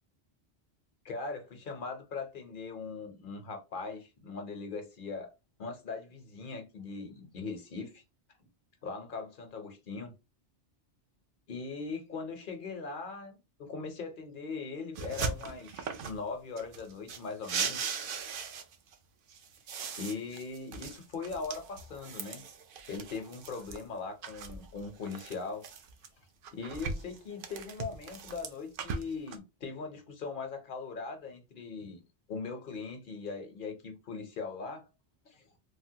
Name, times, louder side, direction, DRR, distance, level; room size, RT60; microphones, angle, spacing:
voice 1, 1.0-5.3 5.6-8.0 8.8-10.1 11.5-17.9 20.0-22.5 22.9-25.7 26.5-32.0 32.3-34.8 35.3-35.4, left 4 dB, 55° left, 0.8 m, -40 dB
sound 1, 15.0-16.2 16.6-18.9 19.3-23.8 24.2-26.1 26.4-29.4, right 5 dB, 60° right, 0.6 m, -39 dB
3.4 x 2.1 x 2.7 m
omnidirectional pair, 1.2 m